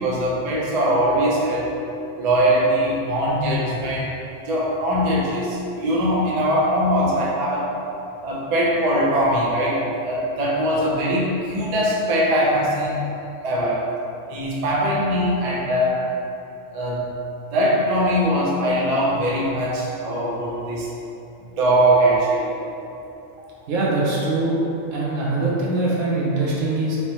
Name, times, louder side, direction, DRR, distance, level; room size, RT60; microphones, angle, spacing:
voice 1, 0.0-1.7 2.2-4.1 4.5-7.7 8.2-13.0 13.4-13.8 14.3-16.0 16.7-17.1 17.5-20.9 21.6-22.6, equal, 50° right, -4 dB, 0.4 m, -21 dB
voice 2, 23.7-24.6 24.9-27.0, right 2 dB, 80° right, -5 dB, 1.1 m, -22 dB
3.3 x 2.8 x 2.9 m, 2.8 s
omnidirectional pair, 1.3 m